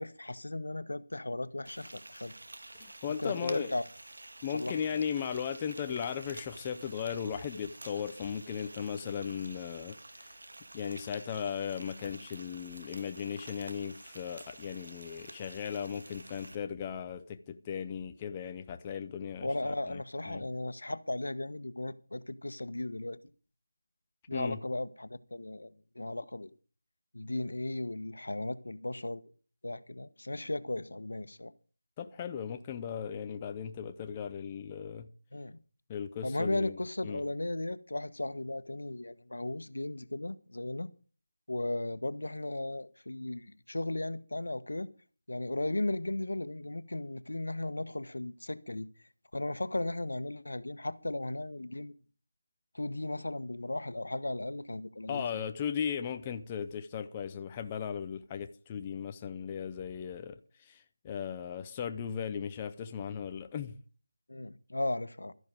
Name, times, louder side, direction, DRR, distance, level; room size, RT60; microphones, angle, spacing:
voice 1, 0.0-2.3 3.2-3.8 4.5-5.0 19.4-23.2 24.3-26.5 27.1-29.3 29.6-31.5 35.3-35.6 36.2-40.9 41.5-44.9 45.3-48.9 49.3-51.9 52.7-55.5 64.3-65.3, left 2 dB, 85° left, 1.3 m, -36 dB
Frying (food), 1.6-16.5, right 2 dB, 65° right, 1.9 m, -50 dB
voice 2, 2.7-3.8 4.4-10.3 10.7-19.5 19.9-20.0 20.3-20.4 24.3-24.6 32.0-35.1 35.9-37.2 55.1-60.4 60.6-63.8, left 7 dB, 10° left, 0.5 m, -37 dB
13.5 x 11.0 x 5.2 m
figure-of-eight pair, 175°, 0 cm